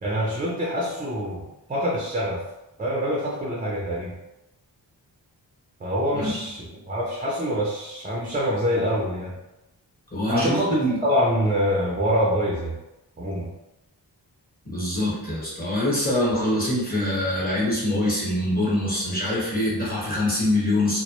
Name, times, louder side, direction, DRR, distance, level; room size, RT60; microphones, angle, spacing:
voice 1, 0.0-2.4 2.8-4.1 5.8-9.3 10.3-12.8 13.2-13.5, equal, 20° right, -5 dB, 0.4 m, -25 dB
voice 2, 10.1-11.0 14.6-21.0, left 1 dB, 20° left, -7 dB, 0.9 m, -24 dB
2.1 x 2.0 x 2.8 m, 0.95 s
wide cardioid pair, 90°, 42 cm